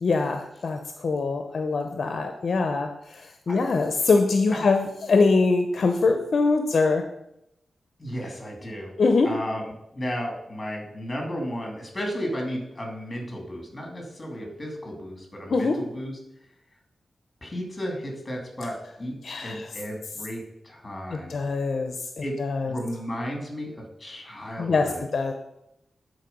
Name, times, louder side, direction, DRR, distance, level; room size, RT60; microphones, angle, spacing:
voice 1, 0.0-7.0 9.0-9.3 15.5-15.8 19.2-19.7 21.1-22.0 22.4-22.7 24.6-25.3, left 3 dB, 60° left, 6 dB, 0.6 m, -23 dB
voice 2, 8.0-8.9 9.2-9.6 9.9-16.2 17.4-21.3 22.2-22.4 22.6-25.0, equal, 20° left, 1 dB, 2.4 m, -34 dB
9.6 x 4.2 x 5.3 m, 0.81 s
wide cardioid pair, 115°, 0 cm